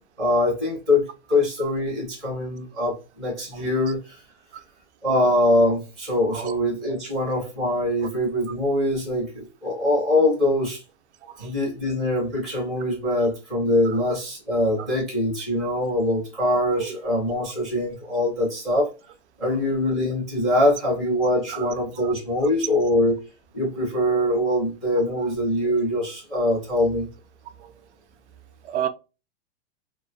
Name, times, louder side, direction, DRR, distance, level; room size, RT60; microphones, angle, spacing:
voice 1, 0.2-4.2 5.0-10.8 11.4-18.9 19.4-23.2 23.5-27.1, left 1 dB, ahead, 0.4 m, -23 dB
voice 2, 3.5-3.6 4.5-4.6 6.3-6.6 11.2-11.5 13.9-14.0 14.7-15.0 16.8-17.0 17.4-17.5 21.5-21.7 22.0-22.1 25.2-25.3 27.6-27.7 28.6-28.9, right 10 dB, 75° right, 0.5 m, -32 dB
2.9 x 2.2 x 2.4 m
hypercardioid pair, 170°, 35 cm